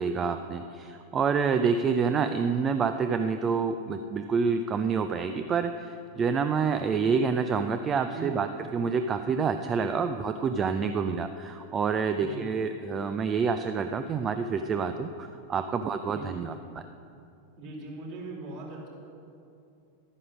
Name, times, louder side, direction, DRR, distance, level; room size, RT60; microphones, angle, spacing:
voice 1, 0.0-16.8, right 5 dB, 25° right, 8 dB, 0.5 m, -28 dB
voice 2, 16.1-16.4 17.6-18.9, right 2 dB, 45° right, -2 dB, 3.7 m, -40 dB
12.5 x 9.8 x 6.2 m, 2.6 s
figure-of-eight pair, 90°, 0 cm